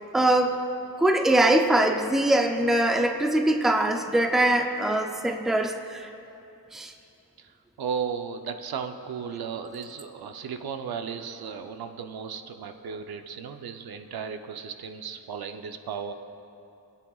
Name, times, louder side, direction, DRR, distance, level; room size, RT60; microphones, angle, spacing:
voice 1, 0.1-0.6 1.0-6.1 6.7-6.9, right 1 dB, ahead, 4 dB, 0.5 m, -22 dB
voice 2, 7.8-16.1, right 6 dB, 80° right, 7 dB, 0.7 m, -35 dB
24.0 x 8.9 x 2.4 m, 2.8 s
wide cardioid pair, 140°, 36 cm